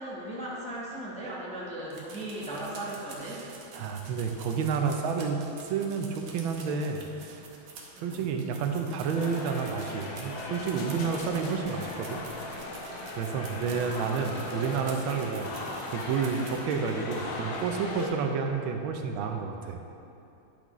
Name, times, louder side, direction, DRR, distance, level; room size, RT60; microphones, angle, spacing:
voice 1, 0.0-3.5 7.9-8.2 13.9-14.9 15.3-15.6, right 1 dB, 5° left, -6 dB, 0.7 m, -38 dB
sound 1, 1.9-16.8 17.2-17.3 17.5-17.6, right 4 dB, 65° right, 1.5 m, -48 dB
voice 2, 3.3-7.5 8.0-12.2 13.2-15.5 15.9-19.8, right 5 dB, 85° right, 4 dB, 1.4 m, -30 dB
sound 2, 9.1-18.1, left 2 dB, 80° left, 1.7 m, -38 dB
10.5 x 6.1 x 3.1 m, 2.8 s
omnidirectional pair, 2.2 m